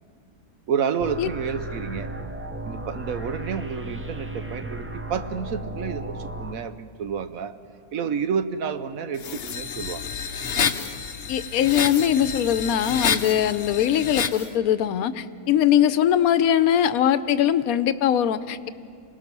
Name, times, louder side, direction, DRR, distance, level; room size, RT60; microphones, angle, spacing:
voice 1, 0.7-2.1 2.7-7.6 7.9-10.0, right 6 dB, 65° right, 10 dB, 1.2 m, -29 dB
sound 1, 1.0-6.5, right 1 dB, 20° right, 0.3 m, -35 dB
sound 2, 9.2-14.5, left 7 dB, 50° left, 0.8 m, -29 dB
voice 2, 11.3-18.7, left 10 dB, 70° left, 13 dB, 1.1 m, -21 dB
27.0 x 19.0 x 6.1 m, 2.3 s
omnidirectional pair, 1.6 m